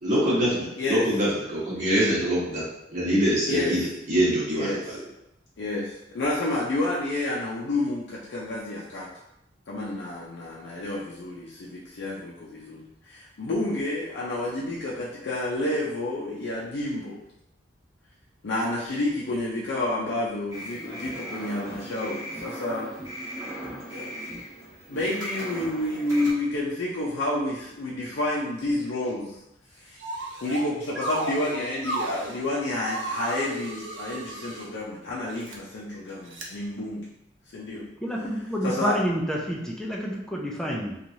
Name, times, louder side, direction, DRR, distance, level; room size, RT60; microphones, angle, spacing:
voice 1, 0.0-5.0, equal, 40° right, -8 dB, 1.1 m, -24 dB
voice 2, 0.8-1.1 3.5-3.9 4.5-4.9 5.6-9.1 9.7-17.2 18.4-22.9 23.7-24.2 24.9-29.4 29.8-30.0 30.4-37.1 37.5-37.9 38.6-39.0, left 2 dB, 65° left, -5 dB, 0.5 m, -30 dB
sound 1, 20.5-26.3, equal, 20° right, 0.9 m, -38 dB
sound 2, 30.0-30.7 31.0-32.4 32.9-34.7 35.3-35.6 36.3-36.5, right 2 dB, 75° right, 0.5 m, -33 dB
voice 3, 38.0-41.0, equal, 5° left, -2 dB, 0.3 m, -28 dB
3.0 x 2.3 x 2.6 m, 0.85 s
head